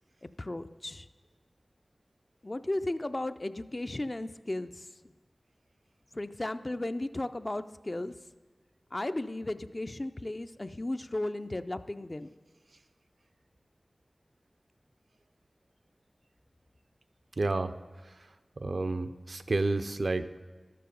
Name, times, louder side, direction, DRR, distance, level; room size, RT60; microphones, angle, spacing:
voice 1, 0.4-1.1 2.4-4.9 6.1-8.1 8.9-12.3, left 1 dB, 35° left, 10 dB, 0.4 m, -35 dB
voice 2, 17.4-17.7 18.0-18.1 18.6-20.4, right 2 dB, 70° right, 10 dB, 0.4 m, -30 dB
12.5 x 6.7 x 5.2 m, 1.3 s
wide cardioid pair, 60°, 0 cm